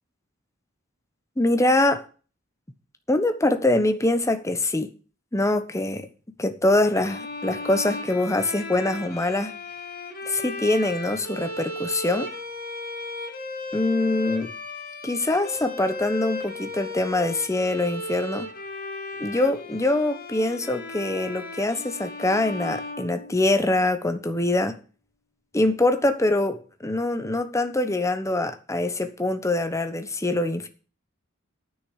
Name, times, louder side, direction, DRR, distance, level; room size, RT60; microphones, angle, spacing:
voice 1, 1.4-2.0 3.1-4.9 5.3-6.1 6.4-9.6 10.3-12.3 13.7-14.5 15.0-18.5 19.2-24.8 25.5-30.7, left 2 dB, 15° left, 1.1 m, -24 dB
sound 1, 6.9-23.8, left 2 dB, 45° left, 2.2 m, -36 dB
9.8 x 6.2 x 8.2 m
head